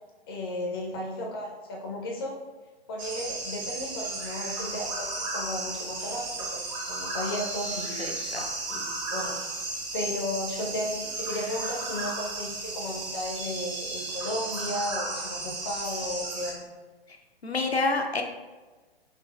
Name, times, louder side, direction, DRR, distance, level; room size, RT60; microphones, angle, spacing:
voice 1, 0.3-2.4 2.9-8.1 8.7-9.3 9.9-16.7, left 1 dB, 25° left, -1 dB, 0.5 m, -34 dB
sound 1, 3.0-16.5, right 2 dB, 35° right, 0.9 m, -34 dB
voice 2, 8.0-8.4 17.4-18.2, left 3 dB, 90° left, 3 dB, 0.5 m, -28 dB
3.9 x 3.2 x 2.2 m, 1.3 s
figure-of-eight pair, 125°, 31 cm